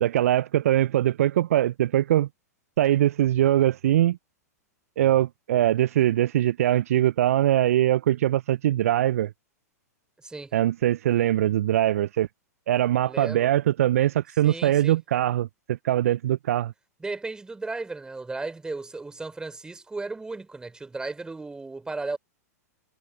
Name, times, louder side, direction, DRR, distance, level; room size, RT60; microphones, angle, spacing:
voice 1, 0.0-2.3 2.8-4.2 5.0-9.3 10.5-12.3 12.7-16.7, right 12 dB, 60° right, 0.6 m, -22 dB
voice 2, 10.2-10.5 13.0-13.5 14.4-15.0 17.0-22.2, right 3 dB, 10° right, 3.7 m, -35 dB
figure-of-eight pair, 100°, 9 cm